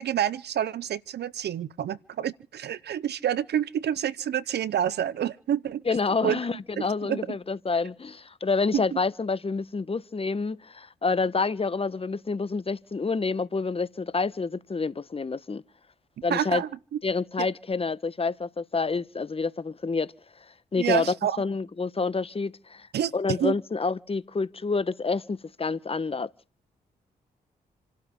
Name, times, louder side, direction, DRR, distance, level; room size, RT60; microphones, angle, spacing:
voice 1, 0.0-5.8 6.2-6.4 6.8-7.2 8.7-8.8 16.3-16.7 17.4-17.5 20.7-21.4 22.9-23.1 23.4-23.6, right 10 dB, 75° right, 0.6 m, -28 dB
voice 2, 5.9-15.6 16.2-16.6 17.0-20.1 20.7-22.9 23.1-26.3, left 4 dB, 35° left, 1.1 m, -28 dB
28.5 x 12.5 x 3.7 m
cardioid pair, 55°, 17 cm